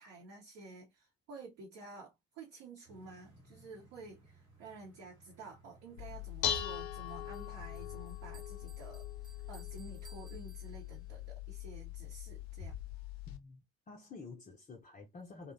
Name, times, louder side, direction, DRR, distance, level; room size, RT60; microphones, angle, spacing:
voice 1, 0.0-12.7, right 3 dB, 60° right, 0.8 m, -51 dB
sound 1, 2.8-8.0, right 2 dB, 85° right, 1.0 m, -62 dB
Dishes pots and pans, 6.0-13.4, left 10 dB, 70° left, 0.4 m, -41 dB
Bell, 6.7-11.2, right 4 dB, 15° right, 0.7 m, -63 dB
voice 2, 13.3-15.5, left 4 dB, 25° left, 0.6 m, -50 dB
2.7 x 2.0 x 2.5 m
figure-of-eight pair, 50°, 32 cm